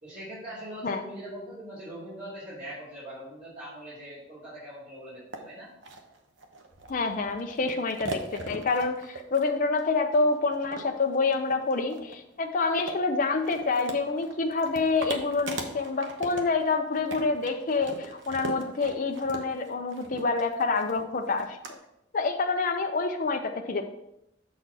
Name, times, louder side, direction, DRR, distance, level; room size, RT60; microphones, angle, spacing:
voice 1, 0.0-5.7, equal, 45° right, -11 dB, 2.9 m, -41 dB
sound 1, 5.3-5.4 5.8-21.7, right 3 dB, 80° right, 0.9 m, -40 dB
voice 2, 6.9-21.8 22.1-23.8, left 3 dB, 45° left, 4 dB, 0.6 m, -27 dB
7.1 x 4.3 x 4.7 m, 0.83 s
head